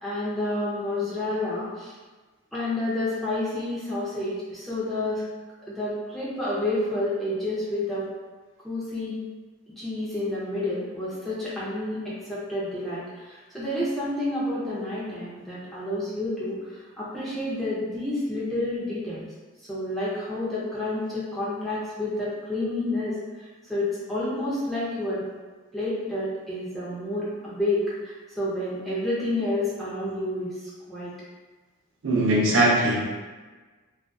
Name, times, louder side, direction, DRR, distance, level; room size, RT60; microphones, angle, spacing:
voice 1, 0.0-1.9 2.5-5.2 5.7-8.0 8.6-9.2 9.8-19.3 19.6-25.2 25.7-31.1, left 1 dB, ahead, -10 dB, 0.6 m, -29 dB
voice 2, 32.0-33.0, right 1 dB, 75° right, -3 dB, 0.5 m, -20 dB
2.4 x 2.4 x 2.3 m, 1.3 s
head